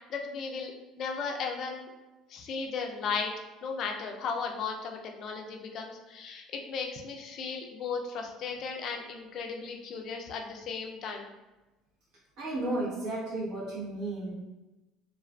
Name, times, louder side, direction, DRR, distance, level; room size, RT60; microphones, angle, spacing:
voice 1, 0.1-0.7 1.0-1.9 2.3-3.3 3.6-11.3, left 5 dB, 55° left, 3 dB, 0.4 m, -35 dB
voice 2, 12.4-14.4, right 2 dB, 70° right, -6 dB, 1.0 m, -33 dB
2.4 x 2.4 x 2.3 m, 1.1 s
supercardioid pair, 80°, 0 cm